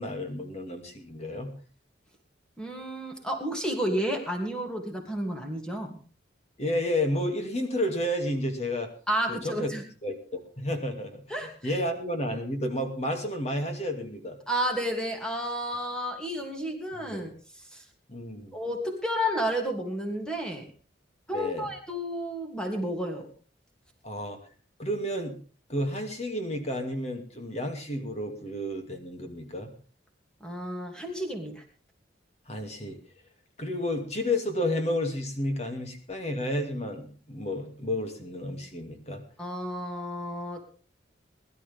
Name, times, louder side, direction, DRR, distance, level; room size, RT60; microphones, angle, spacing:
voice 1, 0.0-1.5 6.6-8.9 9.3-9.7 10.0-14.4 17.0-17.3 18.1-18.5 21.3-21.7 24.0-24.4 24.8-25.4 25.7-29.7 32.5-33.0 33.6-39.2, left 1 dB, 35° left, 5 dB, 2.5 m, -31 dB
voice 2, 2.6-6.0 9.1-9.8 11.3-11.7 14.5-17.3 17.7-17.8 18.5-20.7 21.3-23.3 30.4-31.6 39.4-40.7, equal, 5° left, 2 dB, 2.7 m, -31 dB
21.5 x 12.0 x 3.6 m, 0.38 s
head